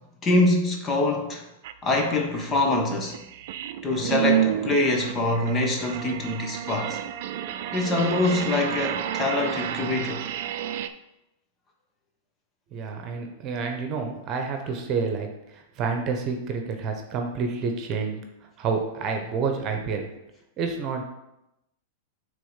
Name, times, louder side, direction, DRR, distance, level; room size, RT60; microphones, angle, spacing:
voice 1, 0.2-1.5 1.8-3.2 3.8-7.0 7.7-10.3, left 2 dB, 25° left, 1.3 m, -24 dB
sound 1, 1.6-1.7 2.2-10.9, right 11 dB, 60° right, 0.4 m, -30 dB
voice 2, 12.7-18.2 18.6-20.1 20.6-21.0, right 5 dB, 40° right, 1.1 m, -29 dB
6.2 x 3.8 x 5.7 m
hypercardioid pair, 110°, 0 cm